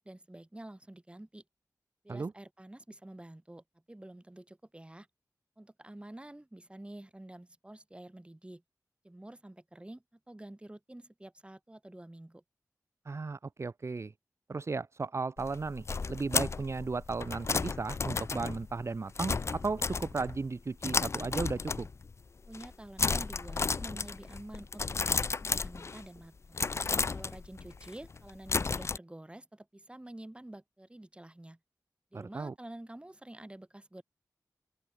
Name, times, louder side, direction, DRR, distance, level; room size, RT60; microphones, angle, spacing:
voice 1, 0.0-1.4 2.0-5.1 5.6-8.6 9.0-12.4 22.5-26.6 27.1-31.6 32.1-34.0, right 1 dB, 15° right, 3.2 m, -49 dB
voice 2, 13.1-14.1 14.5-21.9 32.1-32.5, right 4 dB, 45° right, 0.6 m, -35 dB
sound 1, 15.4-20.5 20.8-22.1 22.4-22.7 23.0-26.2 26.5-29.0, left 4 dB, 45° left, 0.4 m, -33 dB
open air
wide cardioid pair, 75°, 6 cm